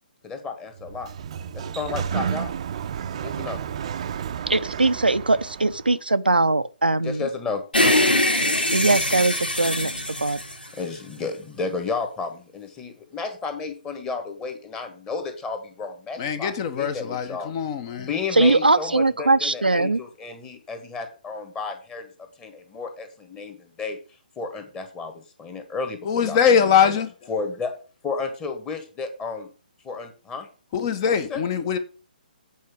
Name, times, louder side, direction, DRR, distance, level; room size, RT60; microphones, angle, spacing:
voice 1, 0.2-1.1 1.5-2.5 3.2-3.6 7.0-7.6 10.8-17.5 18.0-22.1 22.4-24.0 24.4-26.9 27.3-27.7 28.0-29.5 29.8-30.5 31.3-31.4, left 4 dB, 15° left, 1.6 m, -32 dB
Sliding door, 0.8-5.9, right 8 dB, 40° right, 0.6 m, -31 dB
voice 2, 4.5-7.3 8.7-9.9 10.2-10.4 18.3-20.0, right 2 dB, 80° right, 0.6 m, -21 dB
sound 1, 7.7-11.2, left 1 dB, 80° left, 2.7 m, -22 dB
voice 3, 16.2-18.1 26.0-27.1 30.7-31.8, left 7 dB, 30° left, 1.0 m, -22 dB
8.5 x 4.6 x 6.3 m
figure-of-eight pair, 135°, 5 cm